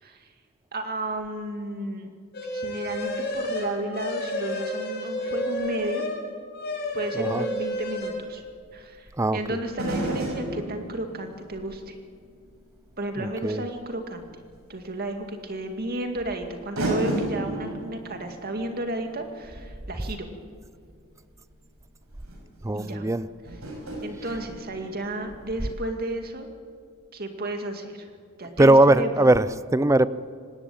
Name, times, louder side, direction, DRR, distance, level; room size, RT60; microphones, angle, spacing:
voice 1, 0.0-0.3 0.7-2.1 2.5-6.1 6.9-8.4 8.7-12.0 13.0-14.3 14.7-20.3 22.7-23.1 23.4-23.6 24.0-26.5 27.1-28.1 28.4-29.3, right 1 dB, 45° right, 5 dB, 2.4 m, -33 dB
sound 1, 2.3-6.2 6.5-8.1, left 1 dB, 50° left, 5.7 m, -30 dB
voice 2, 7.1-7.5 9.2-9.6 13.2-13.6 22.6-23.3 28.6-30.1, right 1 dB, 15° right, 16 dB, 0.5 m, -20 dB
sound 2, 7.6-7.7 9.7-12.7 13.2-13.3 14.8-14.9 16.1-16.2 16.8-20.9 21.8-21.9 22.2-22.4 23.5-25.4 25.6-25.7, right 1 dB, 80° right, 6.3 m, -33 dB
25.0 x 19.0 x 8.9 m, 2.1 s
head